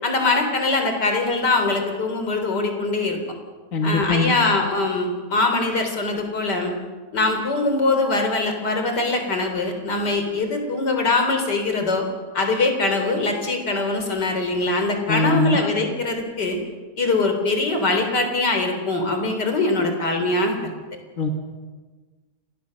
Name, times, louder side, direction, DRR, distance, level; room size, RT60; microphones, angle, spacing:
voice 1, 0.0-3.2 3.8-6.7 7.1-12.0 12.3-16.6 17.0-20.5, left 3 dB, 85° left, 5 dB, 4.4 m, -22 dB
voice 2, 3.7-4.3 15.1-15.6 21.2-21.3, left 2 dB, 55° left, 3 dB, 2.3 m, -21 dB
28.0 x 20.5 x 6.6 m, 1.4 s
omnidirectional pair, 1.8 m